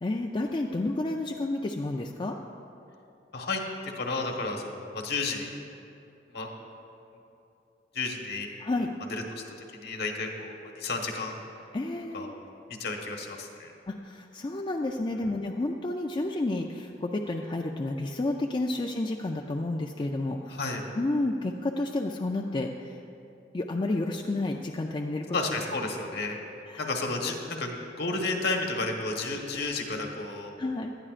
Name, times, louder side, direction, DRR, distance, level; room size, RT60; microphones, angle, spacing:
voice 1, 0.0-2.4 8.6-8.9 11.7-12.3 13.9-20.6 20.9-22.9 23.5-25.2 26.7-27.0 30.6-30.9, left 2 dB, 25° left, 2 dB, 0.4 m, -30 dB
voice 2, 3.3-5.5 6.3-6.5 7.9-8.5 8.8-9.4 9.7-11.4 12.1-12.3 12.7-13.7 20.5-20.8 25.3-26.4 26.8-30.5, left 3 dB, 60° left, 2 dB, 1.3 m, -32 dB
18.5 x 12.0 x 2.5 m, 2.7 s
head